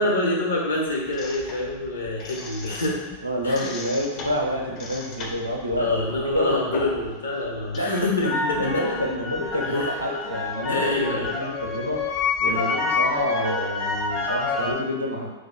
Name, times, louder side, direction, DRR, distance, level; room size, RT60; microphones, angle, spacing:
voice 1, 0.0-3.1 3.4-3.7 5.8-8.9 9.7-9.9 10.7-11.3 12.4-12.7, left 2 dB, 70° left, -2 dB, 0.7 m, -26 dB
sound 1, 1.1-3.2 3.4-7.1 7.4-14.8, left 4 dB, 35° left, 0.5 m, -29 dB
voice 2, 3.2-5.9 6.3-6.6 7.7-15.3, equal, 85° right, -1 dB, 0.5 m, -28 dB
3.1 x 2.1 x 3.7 m, 1.1 s
figure-of-eight pair, 90°, 0 cm